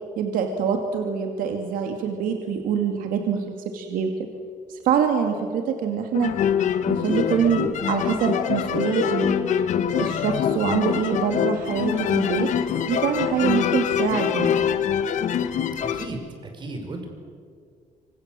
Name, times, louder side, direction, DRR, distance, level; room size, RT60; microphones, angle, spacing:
voice 1, 0.2-4.1 4.7-6.3 6.9-9.3 10.0-12.5 12.9-14.6, right 7 dB, 80° right, 4 dB, 2.4 m, -25 dB
sound 1, 6.1-16.1, left 8 dB, 60° left, 1.5 m, -24 dB
voice 2, 15.9-17.1, right 2 dB, 35° right, 4 dB, 5.3 m, -35 dB
26.5 x 25.5 x 7.7 m, 2.1 s
cardioid pair, 145°, 14 cm